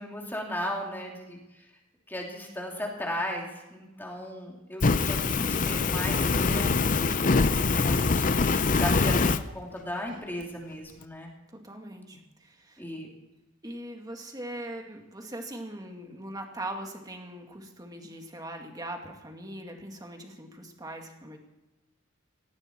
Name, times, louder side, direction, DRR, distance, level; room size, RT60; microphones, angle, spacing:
voice 1, 0.0-1.4 2.1-9.3 9.5-11.3 12.8-13.1, left 1 dB, 10° left, -1 dB, 2.9 m, -36 dB
Fire, 4.8-9.4, left 4 dB, 40° left, 0.6 m, -24 dB
voice 2, 11.5-12.8 13.6-21.4, right 1 dB, 20° right, 3 dB, 2.3 m, -41 dB
18.5 x 15.5 x 4.6 m, 1.0 s
head